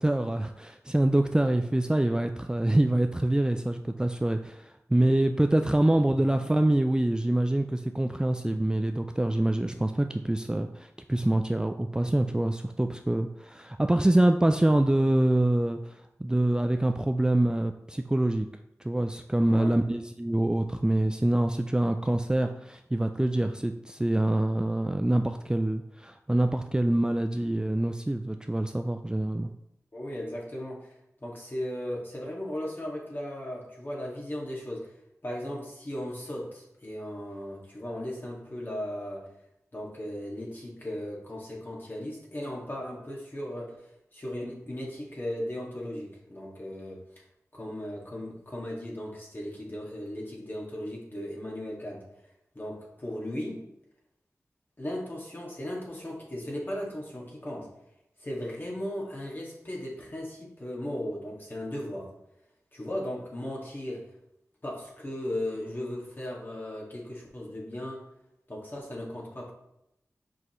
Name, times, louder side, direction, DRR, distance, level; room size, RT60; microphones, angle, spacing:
voice 1, 0.0-18.5 18.8-29.5, right 1 dB, 15° right, 6 dB, 0.3 m, -25 dB
voice 2, 19.5-19.8 29.9-34.9 35.2-39.3 39.7-47.0 47.5-52.0 52.5-53.6 54.8-57.7 58.2-62.1 62.7-64.1 64.6-68.0 68.5-69.5, left 1 dB, 35° left, -4 dB, 2.0 m, -37 dB
6.0 x 5.4 x 3.1 m, 0.83 s
wide cardioid pair, 55°, 6 cm